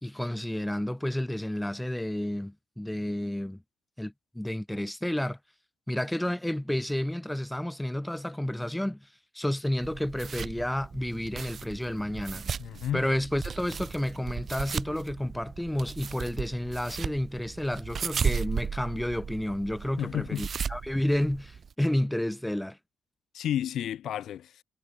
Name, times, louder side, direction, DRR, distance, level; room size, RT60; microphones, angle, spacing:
voice 1, 0.0-3.6 4.0-5.4 5.9-9.1 9.3-12.5 12.9-22.8, left 1 dB, 5° left, 2.3 m, -31 dB
sound 1, 9.8-21.7, right 6 dB, 45° right, 1.7 m, -36 dB
voice 2, 12.6-13.0 20.0-20.5 23.3-24.6, left 11 dB, 70° left, 2.0 m, -31 dB
cardioid pair, 90°, 0 cm